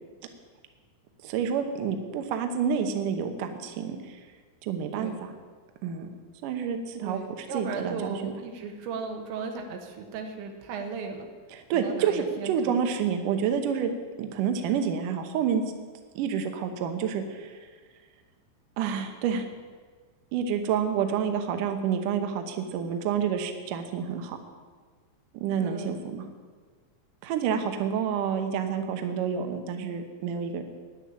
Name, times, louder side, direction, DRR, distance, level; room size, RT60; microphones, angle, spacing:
voice 1, 1.2-4.2 4.6-5.3 5.8-6.1 6.4-8.3 11.5-13.9 14.2-15.6 16.1-17.6 18.8-19.5 20.3-24.4 25.3-26.3 27.2-30.6, right 7 dB, 70° right, 6 dB, 2.1 m, -29 dB
voice 2, 7.0-11.3 11.7-12.8 25.6-26.0, right 5 dB, 85° right, 4 dB, 3.6 m, -36 dB
10.0 x 9.8 x 8.5 m, 1.5 s
omnidirectional pair, 5.1 m